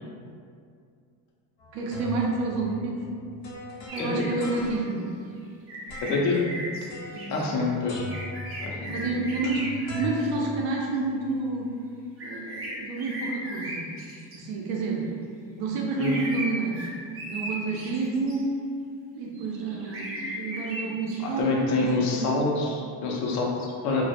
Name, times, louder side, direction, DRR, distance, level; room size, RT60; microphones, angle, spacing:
sound 1, 1.6-5.2 5.9-6.4 6.9-7.6 7.9-11.4, left 1 dB, 75° left, 0.8 m, -40 dB
voice 1, 1.7-3.0 3.9-5.0 7.1-7.4 8.9-11.7 12.2-13.8 14.3-15.0 15.6-16.9 17.3-18.5 19.1-22.3, right 3 dB, 70° right, -2 dB, 0.7 m, -29 dB
sound 2, 3.9-4.7 5.7-6.9 7.1-7.5 8.1-11.0 12.2-14.4 16.0-18.4 19.4-21.4, right 1 dB, 30° right, 0.6 m, -37 dB
voice 2, 6.0-6.4 7.3-8.1 8.6-8.9 16.0-16.1 21.2-24.0, left 3 dB, 40° left, -2 dB, 0.5 m, -26 dB
2.2 x 2.1 x 2.7 m, 2.3 s
supercardioid pair, 85°, 46 cm